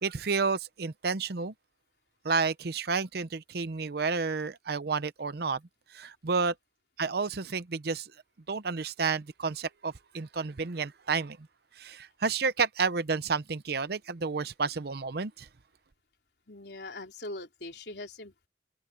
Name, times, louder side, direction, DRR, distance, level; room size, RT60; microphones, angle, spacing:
voice 1, 0.0-1.5 2.2-5.6 5.9-6.5 7.0-8.1 8.5-11.4 11.8-15.5, right 4 dB, 60° right, 0.7 m, -30 dB
voice 2, 16.5-18.5, left 2 dB, 65° left, 3.9 m, -42 dB
head